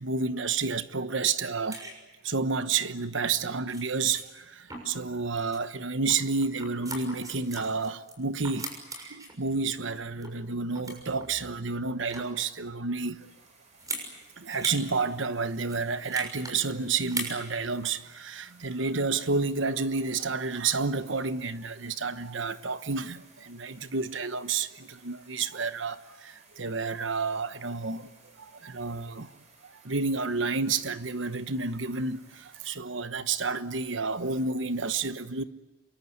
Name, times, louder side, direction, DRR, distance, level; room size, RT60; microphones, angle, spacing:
voice 1, 0.0-1.9 2.2-13.3 14.4-28.1 28.4-29.3 29.6-35.4, right 4 dB, 80° right, 1.2 m, -30 dB
sound 1, 1.7-1.9 2.9-3.1 3.4-3.5 3.7-3.8 4.1-4.2 4.7-5.1 5.4-5.6 6.1-8.1 8.4-9.3 9.9-10.4 10.7-11.3 11.9-12.4 13.8-14.1 14.5-14.8 15.1-15.2 15.6-16.5 17.0-17.4 17.8-18.0, right 2 dB, 20° right, 6.5 m, -39 dB
sound 2, 13.1-32.7, right 3 dB, 40° right, 8.0 m, -59 dB
27.5 x 23.5 x 8.1 m
head